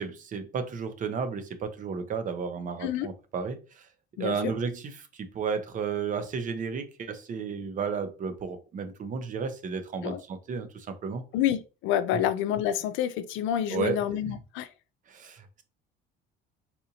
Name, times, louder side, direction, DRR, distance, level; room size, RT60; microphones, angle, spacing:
voice 1, 0.0-3.9 4.2-11.2 12.1-12.3 13.7-14.4 15.1-15.6, right 5 dB, 40° right, 0.7 m, -33 dB
voice 2, 11.3-14.7, left 10 dB, 70° left, 0.5 m, -28 dB
4.1 x 2.6 x 2.8 m
supercardioid pair, 105°, 21 cm